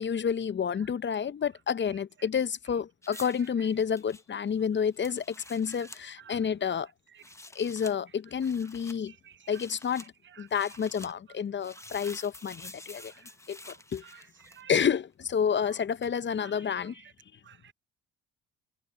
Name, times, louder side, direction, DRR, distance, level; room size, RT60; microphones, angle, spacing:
voice 1, 0.0-6.9 7.5-9.1 9.5-10.1 10.4-13.1 13.5-13.6 13.9-14.0 14.7-17.0, left 7 dB, 35° left, 0.7 m, -29 dB
sound 1, 3.0-6.0 7.1-7.9 8.4-9.0 9.5-10.1 10.5-11.1 11.6-14.8 16.0-16.2, left 2 dB, 10° left, 1.1 m, -49 dB
voice 2, 9.1-9.6 10.3-10.5 12.0-12.1 13.0-13.3 13.6-14.7 16.4-16.6 17.0-17.1 17.4-17.7, right 9 dB, 40° right, 0.4 m, -54 dB
supercardioid pair, 65°, 32 cm